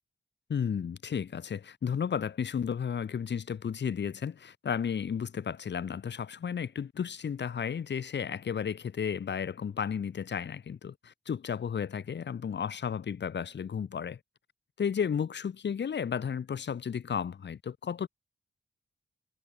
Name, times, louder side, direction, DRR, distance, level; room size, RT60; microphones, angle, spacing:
voice 1, 0.5-14.2 14.8-18.1, left 7 dB, 85° left, 2.4 m, -33 dB
wide cardioid pair, 140°, 18 cm